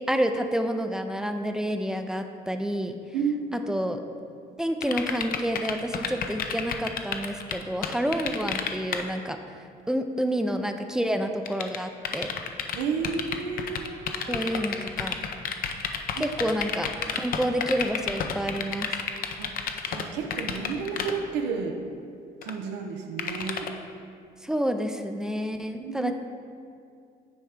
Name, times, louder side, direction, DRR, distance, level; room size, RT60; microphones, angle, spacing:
voice 1, 0.0-3.0 3.5-4.0 4.6-12.3 14.2-15.2 16.2-18.9 24.4-26.1, equal, 5° right, 6 dB, 0.4 m, -29 dB
voice 2, 3.1-3.7 12.7-14.4 16.2-16.4 19.4-19.6 19.9-21.8 22.4-23.7 25.8-26.1, right 5 dB, 90° right, 4 dB, 0.7 m, -31 dB
sound 1, 4.8-9.0 11.5-20.1 20.3-21.1 22.4-22.5 23.2-23.7, left 8 dB, 60° left, 0.6 m, -30 dB
9.4 x 3.4 x 5.0 m, 2.3 s
cardioid pair, 110°, 17 cm